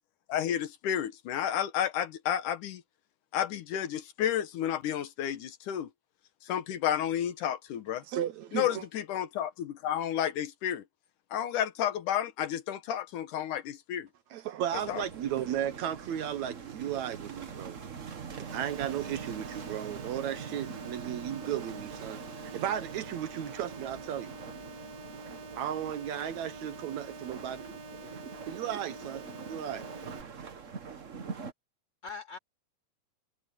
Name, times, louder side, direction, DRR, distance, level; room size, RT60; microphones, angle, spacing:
voice 1, 0.3-2.8 3.3-5.9 6.4-8.0 8.5-10.8 11.3-14.1 14.9-15.0, left 10 dB, 80° left, 2.7 m, -31 dB
voice 2, 8.1-8.8 14.3-17.8 18.5-22.2 22.5-24.3 25.5-27.7 28.5-29.8, right 10 dB, 70° right, 2.2 m, -35 dB
sound 1, 14.7-31.5, right 6 dB, 90° right, 0.6 m, -44 dB
voice 3, 15.2-15.7 32.0-32.4, left 5 dB, 20° left, 4.3 m, -44 dB
sound 2, 18.5-30.2, right 2 dB, 40° right, 2.1 m, -47 dB
omnidirectional pair, 3.6 m